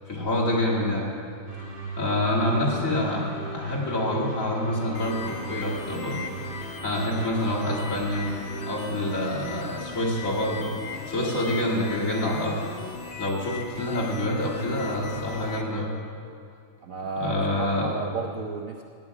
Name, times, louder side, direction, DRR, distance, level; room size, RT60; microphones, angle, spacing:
voice 1, 0.1-1.1 2.0-3.3 3.5-6.2 6.8-8.3 8.7-10.7 11.1-12.6 13.2-15.9 17.2-17.9, left 1 dB, 40° left, -4 dB, 2.5 m, -27 dB
sound 1, 1.5-8.7, right 2 dB, 25° right, 2.7 m, -37 dB
sound 2, 4.9-15.6, left 5 dB, 75° left, 0.5 m, -39 dB
voice 2, 16.8-18.8, right 4 dB, 75° right, 3 dB, 0.7 m, -32 dB
17.0 x 9.6 x 4.9 m, 2.3 s
omnidirectional pair, 2.3 m